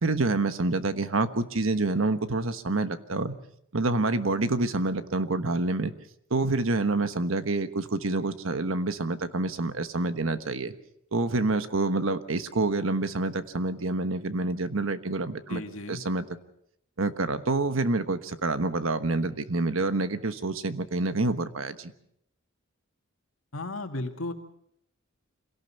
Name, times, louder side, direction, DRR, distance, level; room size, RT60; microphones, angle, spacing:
voice 1, 0.0-3.4 3.7-5.9 6.3-10.7 11.1-15.6 15.9-16.2 17.0-21.9, right 2 dB, 75° right, 10 dB, 1.3 m, -27 dB
voice 2, 15.5-16.0 23.5-24.3, left 2 dB, 80° left, 5 dB, 2.3 m, -34 dB
26.0 x 17.5 x 5.8 m, 0.72 s
head